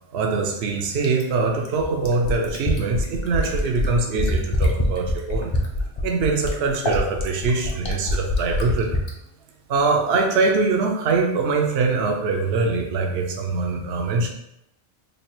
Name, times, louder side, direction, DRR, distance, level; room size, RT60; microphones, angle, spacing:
voice 1, 0.1-5.5 6.0-8.9 9.7-14.3, right 4 dB, 65° right, 2 dB, 0.8 m, -23 dB
Fill (with liquid), 1.0-9.1 10.5-10.6, left 1 dB, 35° left, 0.5 m, -24 dB
3.3 x 2.4 x 4.3 m, 0.82 s
omnidirectional pair, 1.2 m